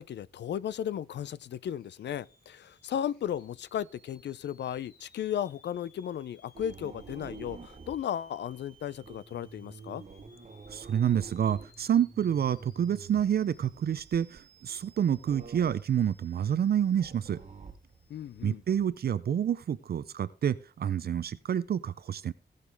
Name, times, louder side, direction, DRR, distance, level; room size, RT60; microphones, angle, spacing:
voice 1, 0.0-10.0 18.1-18.6, left 10 dB, 90° left, 0.5 m, -35 dB
sound 1, 1.8-18.5, equal, 60° left, 4.6 m, -63 dB
sound 2, 6.5-18.9, right 4 dB, 40° right, 1.5 m, -49 dB
voice 2, 10.7-17.4 18.4-22.3, right 9 dB, 65° right, 0.5 m, -28 dB
19.0 x 6.6 x 3.5 m
wide cardioid pair, 135°, 18 cm